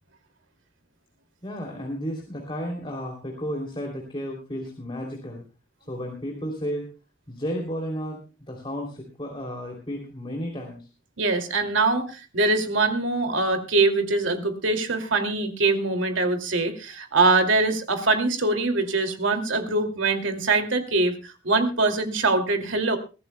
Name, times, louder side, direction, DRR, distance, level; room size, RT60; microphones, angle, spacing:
voice 1, 1.4-5.4 5.9-6.9 7.3-10.9, equal, 25° left, 0 dB, 3.0 m, -33 dB
voice 2, 11.2-23.0, right 3 dB, 90° right, 6 dB, 2.5 m, -23 dB
22.5 x 15.5 x 2.2 m, 0.32 s
head